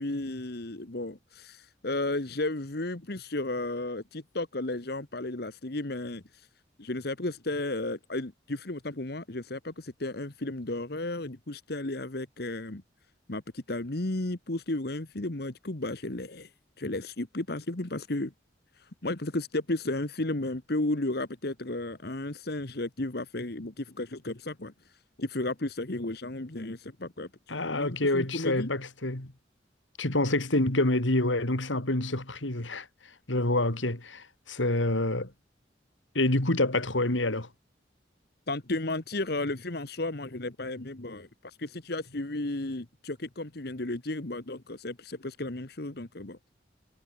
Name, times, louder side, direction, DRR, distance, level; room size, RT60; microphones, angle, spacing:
voice 1, 0.0-6.5 6.8-12.8 13.3-16.5 16.8-18.3 18.8-24.7 25.2-27.3 27.7-28.7 38.5-46.4, left 2 dB, 55° left, 1.5 m, -33 dB
voice 2, 27.5-29.3 30.0-35.3 36.1-37.5, left 2 dB, 90° left, 3.2 m, -27 dB
head